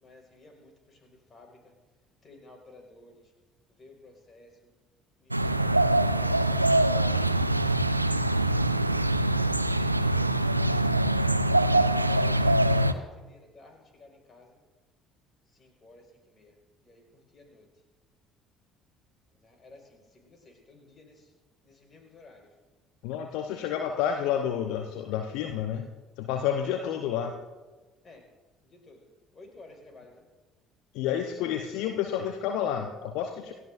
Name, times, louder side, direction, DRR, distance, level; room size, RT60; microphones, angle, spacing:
voice 1, 0.0-0.7 1.0-1.5 2.2-3.1 3.8-4.5 11.8-14.6 15.6-16.5 16.9-17.0 17.3-17.7 19.4-21.2 21.7-22.4 28.0-28.2 28.7-29.1 29.3-30.2, left 2 dB, 35° left, 2 dB, 5.2 m, -54 dB
sound 1, 5.3-12.9, right 1 dB, 90° right, 0.4 m, -24 dB
voice 2, 23.0-25.9 26.2-27.4 30.9-33.5, left 9 dB, 60° left, 5 dB, 0.9 m, -30 dB
28.5 x 15.5 x 2.6 m, 1.3 s
figure-of-eight pair, 55°, 0 cm